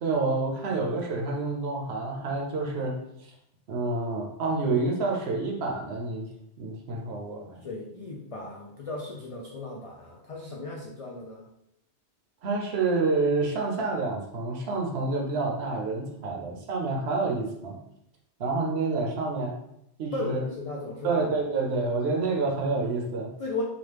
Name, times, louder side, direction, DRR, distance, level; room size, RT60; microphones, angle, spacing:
voice 1, 0.0-3.3 3.7-6.3 6.6-7.6 12.4-17.8 18.4-19.6 20.0-20.4 21.0-23.3, right 3 dB, 70° right, 1 dB, 0.9 m, -28 dB
voice 2, 7.6-11.5 20.1-21.3 23.4-23.6, left 2 dB, 65° left, -2 dB, 0.3 m, -36 dB
3.0 x 2.3 x 3.3 m, 0.79 s
omnidirectional pair, 1.1 m